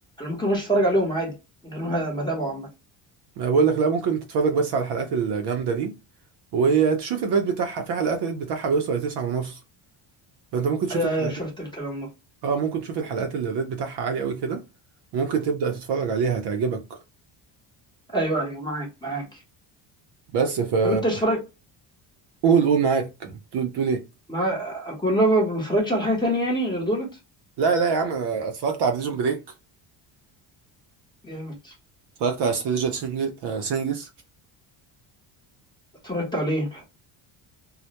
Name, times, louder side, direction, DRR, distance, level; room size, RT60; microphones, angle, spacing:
voice 1, 0.2-1.3 1.6-2.7 10.9-12.1 18.1-19.2 20.8-21.4 24.3-27.1 31.2-31.7 36.0-36.8, right 1 dB, 10° left, 0.8 m, -25 dB
voice 2, 3.4-6.0 6.5-9.6 10.5-11.3 12.4-14.6 15.1-17.0 20.3-21.0 22.4-24.0 27.6-29.4 32.2-34.1, right 5 dB, 55° right, 0.5 m, -24 dB
2.1 x 2.1 x 2.7 m
cardioid pair, 160°, 48 cm